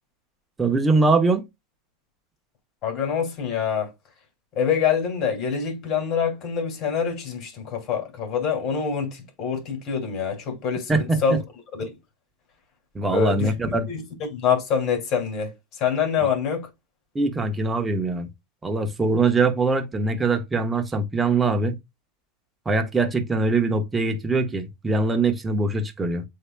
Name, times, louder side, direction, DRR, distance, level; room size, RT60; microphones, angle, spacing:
voice 1, 0.6-1.4 10.9-11.4 12.9-13.9 17.1-18.3 18.6-21.8 22.7-26.2, right 3 dB, 15° right, 1.0 m, -22 dB
voice 2, 2.8-3.9 4.5-10.9 11.2-11.4 11.7-11.9 13.1-14.0 14.3-16.7, left 7 dB, 45° left, 2.6 m, -25 dB
8.0 x 2.9 x 2.2 m
hypercardioid pair, 110°, 0 cm